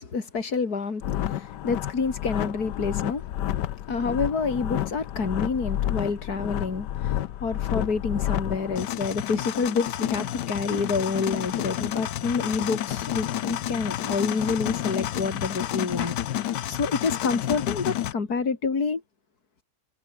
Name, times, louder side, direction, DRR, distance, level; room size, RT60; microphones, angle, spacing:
voice 1, 0.0-3.3 3.9-19.0, left 4 dB, 65° left, 3.4 m, -28 dB
sound 1, 1.0-18.1, left 12 dB, 85° left, 1.5 m, -30 dB
omnidirectional pair, 1.8 m